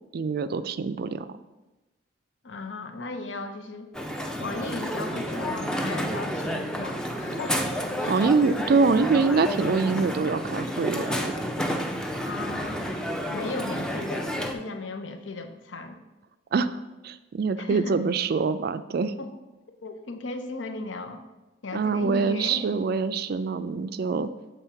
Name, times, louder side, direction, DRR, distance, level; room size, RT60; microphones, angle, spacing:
voice 1, 0.1-1.4 8.1-11.2 16.5-19.1 21.7-24.3, right 4 dB, 55° right, 12 dB, 0.3 m, -25 dB
voice 2, 2.4-3.9 4.4-7.6 8.0-8.3 12.2-13.0 13.3-16.0 17.6-17.9 19.0-19.3 19.8-21.2 21.6-22.7, left 3 dB, 75° left, 8 dB, 0.6 m, -36 dB
Crowd, 3.9-14.5, equal, 5° left, 0.5 m, -30 dB
7.3 x 3.5 x 5.7 m, 1.1 s
head